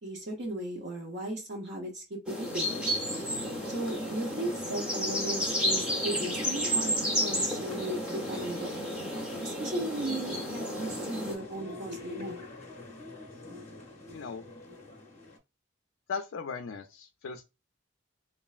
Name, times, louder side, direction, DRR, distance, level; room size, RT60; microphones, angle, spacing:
voice 1, 0.0-2.7 3.7-8.7 9.4-12.4, right 1 dB, 55° right, 0.7 m, -36 dB
sound 1, 2.3-11.3, equal, 5° right, 0.7 m, -32 dB
sound 2, 2.7-15.4, left 2 dB, 35° left, 0.7 m, -46 dB
voice 2, 14.1-14.4 16.1-17.4, left 5 dB, 75° left, 0.4 m, -37 dB
3.1 x 2.5 x 2.3 m
head